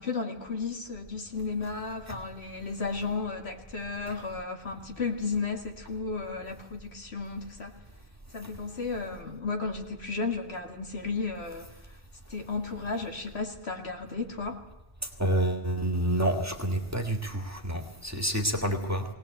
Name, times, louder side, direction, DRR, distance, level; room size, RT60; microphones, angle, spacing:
voice 1, 0.0-7.7 8.3-12.0 12.3-14.6, left 4 dB, 75° left, 4 dB, 2.4 m, -34 dB
voice 2, 15.2-19.0, right 1 dB, 15° right, 4 dB, 2.0 m, -28 dB
20.5 x 18.5 x 8.0 m, 0.99 s
omnidirectional pair, 1.1 m